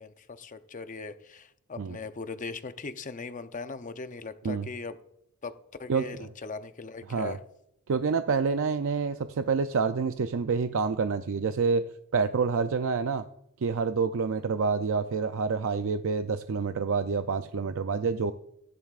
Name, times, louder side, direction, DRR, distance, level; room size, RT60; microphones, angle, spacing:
voice 1, 0.0-5.0 5.4-5.5 5.8-7.4, left 4 dB, 35° left, 10 dB, 0.6 m, -39 dB
voice 2, 5.9-6.3 7.1-7.4 7.9-11.8 12.1-13.2 13.6-18.3, right 5 dB, 60° right, 9 dB, 0.4 m, -27 dB
16.5 x 10.5 x 2.4 m, 0.77 s
head